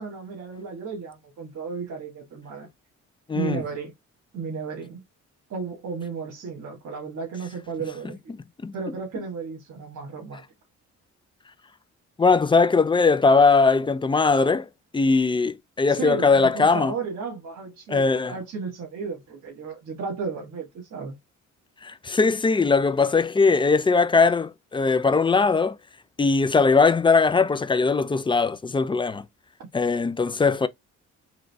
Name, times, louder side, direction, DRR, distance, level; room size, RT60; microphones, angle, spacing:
voice 1, 0.0-2.7 3.3-3.9 4.3-5.0 5.5-8.3 8.7-10.4 15.9-21.2, right 5 dB, 60° right, 1.7 m, -34 dB
voice 2, 3.3-3.6 8.6-8.7 12.2-14.7 14.9-16.9 17.9-18.3 21.8-25.8 26.2-29.2 29.7-30.7, left 4 dB, 15° left, 0.4 m, -20 dB
3.8 x 3.1 x 3.4 m
cardioid pair, 90°, 30 cm